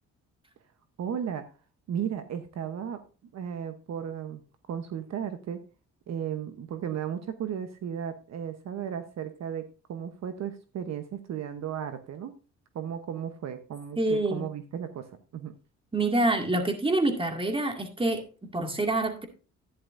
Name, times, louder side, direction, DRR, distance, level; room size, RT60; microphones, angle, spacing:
voice 1, 1.0-1.5 1.9-3.0 3.3-4.4 4.7-5.6 6.1-12.3 12.7-15.5, right 8 dB, 60° right, 1.0 m, -35 dB
voice 2, 14.0-14.4 15.9-19.3, right 2 dB, 15° right, 2.1 m, -26 dB
11.5 x 10.5 x 2.6 m
cardioid pair, 90°, 30 cm